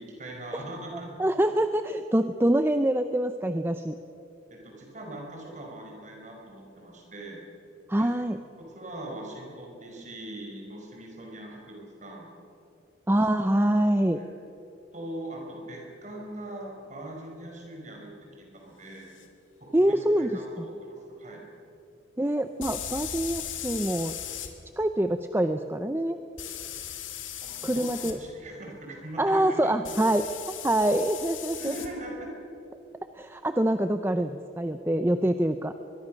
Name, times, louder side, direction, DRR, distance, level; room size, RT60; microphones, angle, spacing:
voice 1, 0.0-1.1 4.5-7.4 8.0-8.1 8.6-12.3 14.1-14.3 14.9-18.1 18.4-19.1 19.6-21.4 27.4-29.7 31.6-32.3, right 1 dB, 35° right, 0 dB, 5.1 m, -41 dB
voice 2, 1.2-4.0 7.9-8.4 13.1-14.2 19.7-20.7 22.2-24.1 24.8-26.2 27.6-28.2 29.2-30.3 30.6-31.8 33.1-35.7, right 1 dB, 10° right, 9 dB, 0.5 m, -25 dB
sound 1, 19.2-19.3 22.6-24.5 26.4-28.2 29.9-31.9, left 10 dB, 80° left, 2.2 m, -37 dB
23.5 x 21.5 x 6.4 m, 2.8 s
head